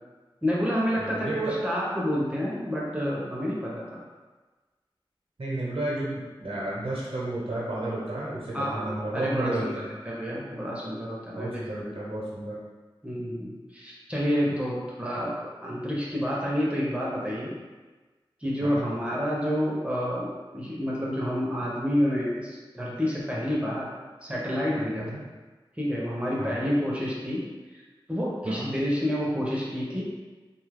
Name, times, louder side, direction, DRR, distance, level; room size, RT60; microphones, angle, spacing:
voice 1, 0.4-4.0 8.5-9.7 10.1-11.9 13.0-15.4 15.6-17.5 18.4-23.9 24.2-25.2 25.8-27.4 27.7-27.8 28.1-30.0, equal, 10° right, -6 dB, 0.6 m, -29 dB
voice 2, 1.0-1.3 5.4-9.9 11.4-12.6 18.6-18.8 25.0-25.2 26.4-26.6 28.4-28.7, right 1 dB, 80° right, -6 dB, 0.7 m, -32 dB
2.7 x 2.3 x 3.3 m, 1.3 s
wide cardioid pair, 60°, 9 cm